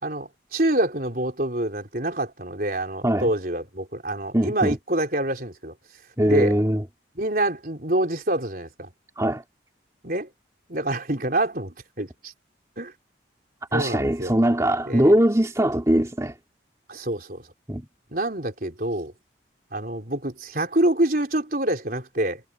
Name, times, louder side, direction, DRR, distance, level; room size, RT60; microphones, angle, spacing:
voice 1, 0.0-5.7 6.2-6.5 7.2-8.9 10.0-10.3 10.7-12.3 12.8-12.9 13.7-14.4 14.9-15.1 16.9-17.4 18.1-19.1 19.7-22.4, right 1 dB, 50° right, 4.3 m, -26 dB
voice 2, 4.3-4.8 6.2-6.8 9.2-9.4 13.7-16.3 17.7-17.9, right 1 dB, 15° right, 2.5 m, -21 dB
head